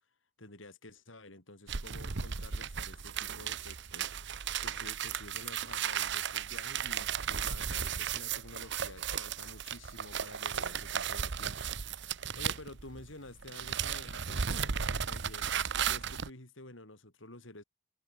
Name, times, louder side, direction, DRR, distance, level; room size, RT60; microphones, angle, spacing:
voice 1, 0.4-4.1 4.6-15.5 15.9-17.6, left 2 dB, 70° left, 5.4 m, -51 dB
sound 1, 1.7-13.1 13.4-16.3, right 8 dB, 65° right, 1.0 m, -35 dB
head